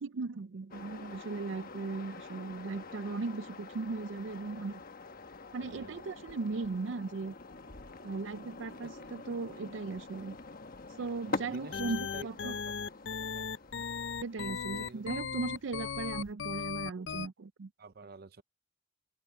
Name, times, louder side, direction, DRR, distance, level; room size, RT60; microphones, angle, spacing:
voice 1, 0.0-4.8 5.5-7.3 8.0-10.4 11.0-12.5 14.2-17.7, right 3 dB, 90° right, 0.5 m, -37 dB
sound 1, 0.7-16.3, left 3 dB, 50° left, 1.1 m, -46 dB
voice 2, 5.6-6.0 8.8-9.1 11.3-12.6 13.3-13.5 14.8-15.2 15.7-15.9 17.8-18.4, right 3 dB, 55° right, 0.7 m, -50 dB
sound 2, 11.5-17.3, left 6 dB, 80° left, 0.7 m, -37 dB
head